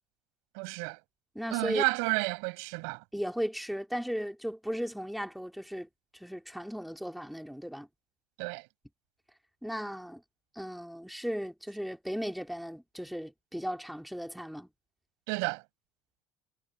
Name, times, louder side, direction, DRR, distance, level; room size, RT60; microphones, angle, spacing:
voice 1, 0.5-1.0 1.5-3.0 8.4-8.7 15.3-15.6, right 34 dB, 80° right, 5.9 m, -31 dB
voice 2, 1.4-1.8 3.1-5.9 6.2-7.9 9.6-10.2 10.6-14.7, equal, ahead, 2.4 m, -36 dB
cardioid pair, 175°, 6 cm